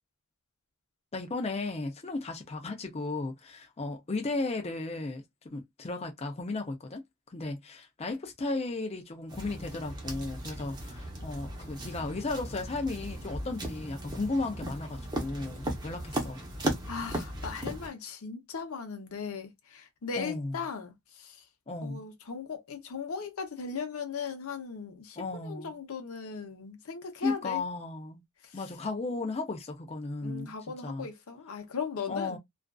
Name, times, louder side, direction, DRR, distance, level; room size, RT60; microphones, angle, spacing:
voice 1, 1.1-7.0 7.3-16.4 20.1-20.6 21.7-22.0 25.2-25.8 27.2-28.2 28.5-30.5 30.8-31.1 32.1-32.4, left 3 dB, 30° left, 0.5 m, -35 dB
sound 1, 9.3-17.9, right 1 dB, 20° right, 0.8 m, -37 dB
voice 2, 16.8-21.4 21.8-27.6 28.5-28.6 30.2-32.4, left 5 dB, 75° left, 0.7 m, -38 dB
2.4 x 2.4 x 2.2 m
head